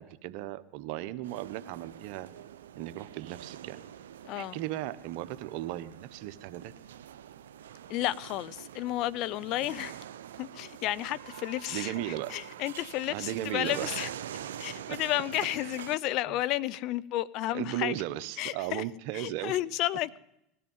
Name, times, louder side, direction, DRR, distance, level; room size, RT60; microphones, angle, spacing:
voice 1, 0.0-2.3 2.8-3.8 4.3-6.7 11.7-12.3 13.1-14.0 14.9-15.0 15.6-15.8 16.3-16.4 17.5-19.6, right 14 dB, 65° right, 0.9 m, -36 dB
sound 1, 1.2-16.0, right 10 dB, 85° right, 0.6 m, -45 dB
voice 2, 4.3-4.6 7.9-10.0 10.4-14.1 14.6-18.0 18.4-18.8 19.1-20.2, left 15 dB, 55° left, 0.5 m, -32 dB
19.5 x 12.5 x 5.5 m
hypercardioid pair, 100°, 0 cm